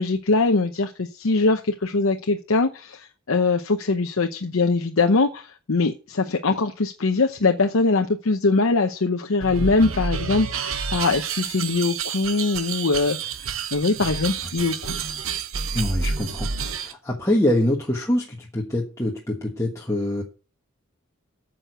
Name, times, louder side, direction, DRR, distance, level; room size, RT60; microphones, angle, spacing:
voice 1, 0.0-13.2 13.7-15.0, left 3 dB, 70° left, 4 dB, 0.8 m, -22 dB
sound 1, 9.4-16.9, right 5 dB, 70° right, 0.9 m, -29 dB
voice 2, 15.7-20.2, left 1 dB, 15° left, -2 dB, 1.3 m, -24 dB
9.1 x 6.3 x 8.0 m, 0.37 s
head